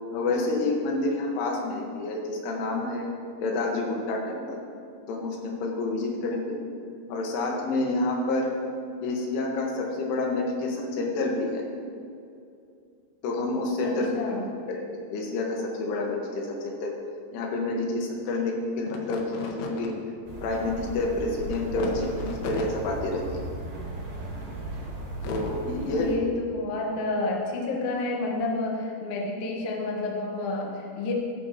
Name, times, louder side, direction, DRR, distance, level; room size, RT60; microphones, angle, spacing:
voice 1, 0.1-3.1 3.4-4.6 5.1-6.6 7.1-8.5 9.0-11.6 13.2-14.3 14.7-14.8 15.1-16.9 17.3-19.9 20.4-23.5 25.2-26.1, left 2 dB, 85° left, 0 dB, 4.1 m, -28 dB
voice 2, 13.8-14.5 25.9-31.1, left 2 dB, 65° left, 0 dB, 2.7 m, -30 dB
sound 1, 20.3-26.2, right 2 dB, 60° right, 3.3 m, -37 dB
16.0 x 12.5 x 3.0 m, 2.5 s
omnidirectional pair, 5.4 m